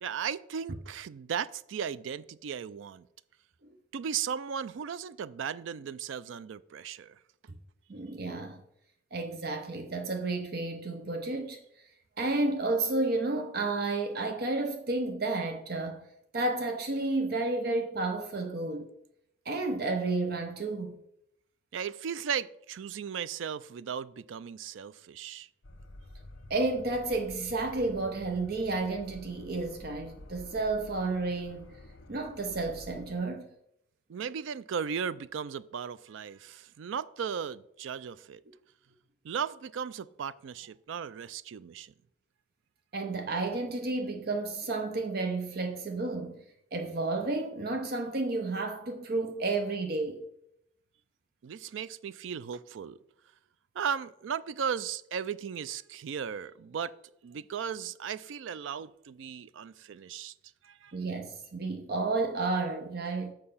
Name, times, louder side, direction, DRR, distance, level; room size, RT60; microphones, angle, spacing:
voice 1, 0.0-3.1 3.9-7.2 21.7-25.5 34.1-38.4 39.2-41.9 51.4-53.0 53.8-56.9 57.2-60.3 60.6-60.9, right 7 dB, 75° right, 0.4 m, -36 dB
voice 2, 7.9-8.6 9.1-11.6 12.2-16.0 16.3-18.9 19.5-21.0 26.5-31.8 32.1-33.5 42.9-46.4 46.7-50.2 60.9-63.3, right 3 dB, 50° right, 0.7 m, -31 dB
sound 1, 25.6-33.2, left 1 dB, 75° left, 0.9 m, -50 dB
6.7 x 6.0 x 5.5 m
head